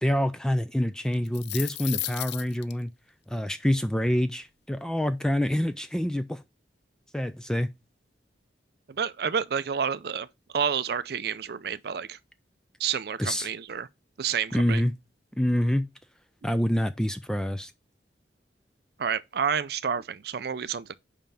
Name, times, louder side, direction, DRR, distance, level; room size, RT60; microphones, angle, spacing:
voice 1, 0.0-2.9 3.3-6.4 7.1-7.7 13.2-13.5 14.5-14.9 15.4-15.9 16.4-17.7, equal, 5° left, 0.4 m, -26 dB
sound 1, 1.1-2.7, left 15 dB, 70° left, 0.4 m, -34 dB
voice 2, 9.0-10.3 10.5-12.2 12.8-13.9 14.2-14.8 19.0-20.9, right 7 dB, 60° right, 0.5 m, -29 dB
5.6 x 5.1 x 5.7 m
head